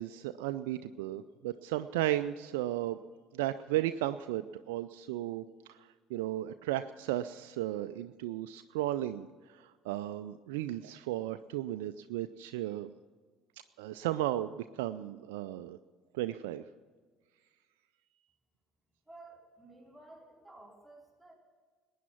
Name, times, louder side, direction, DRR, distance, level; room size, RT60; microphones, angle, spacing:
voice 1, 0.0-3.0 3.3-5.8 6.1-12.9 13.8-15.8 16.1-16.6, right 14 dB, 70° right, 9 dB, 0.4 m, -35 dB
voice 2, 19.1-21.3, right 2 dB, 10° right, -2 dB, 4.0 m, -54 dB
19.5 x 9.3 x 5.9 m, 1.5 s
figure-of-eight pair, 60°, 0 cm